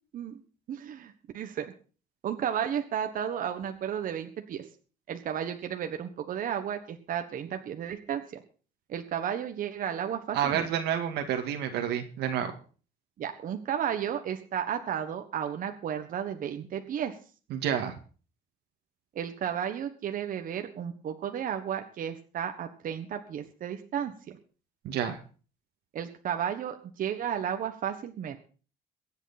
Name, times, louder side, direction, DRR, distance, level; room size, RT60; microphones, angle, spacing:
voice 1, 0.7-1.7 2.2-4.6 5.1-8.2 8.9-10.7 13.2-17.1 19.1-24.4 25.9-28.4, right 9 dB, 55° right, 6 dB, 1.4 m, -33 dB
voice 2, 10.3-12.5 17.5-17.9 24.8-25.2, right 9 dB, 80° right, 5 dB, 1.9 m, -29 dB
23.0 x 8.1 x 4.2 m, 0.38 s
cardioid pair, 110°, 17 cm